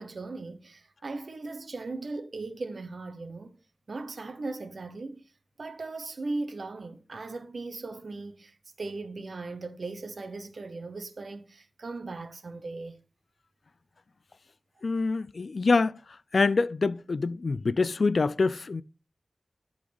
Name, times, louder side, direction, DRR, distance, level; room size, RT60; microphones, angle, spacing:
voice 1, 0.0-3.6 3.9-5.2 5.6-13.0, right 3 dB, 80° right, 0.9 m, -38 dB
voice 2, 14.8-16.0 16.3-18.8, left 4 dB, 80° left, 0.4 m, -25 dB
11.5 x 4.0 x 5.1 m
wide cardioid pair, 70°, 0 cm